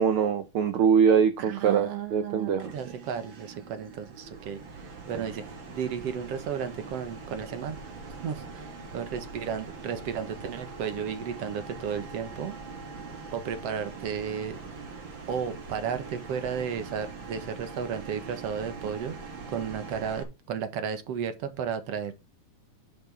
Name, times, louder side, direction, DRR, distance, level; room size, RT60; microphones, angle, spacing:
voice 1, 0.0-2.7, right 7 dB, 85° right, 1.1 m, -23 dB
voice 2, 1.4-7.8 8.1-12.6 13.3-14.6 15.3-22.1, right 7 dB, 60° right, 2.2 m, -34 dB
sound 1, 2.6-20.2, right 4 dB, 40° right, 2.7 m, -42 dB
10.5 x 6.1 x 4.4 m
omnidirectional pair, 3.5 m